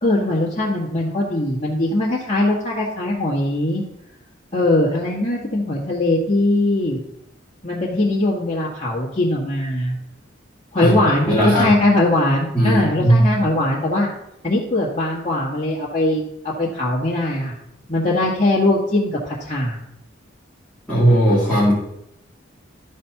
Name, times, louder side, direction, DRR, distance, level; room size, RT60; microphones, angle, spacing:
voice 1, 0.0-3.8 4.5-7.0 7.6-9.9 10.7-14.1 14.4-17.5 17.9-19.8, left 1 dB, 30° left, -7 dB, 1.7 m, -20 dB
voice 2, 10.7-11.7 12.5-13.3 20.9-21.7, right 1 dB, 5° left, -10 dB, 2.2 m, -17 dB
12.5 x 4.3 x 5.9 m, 0.82 s
head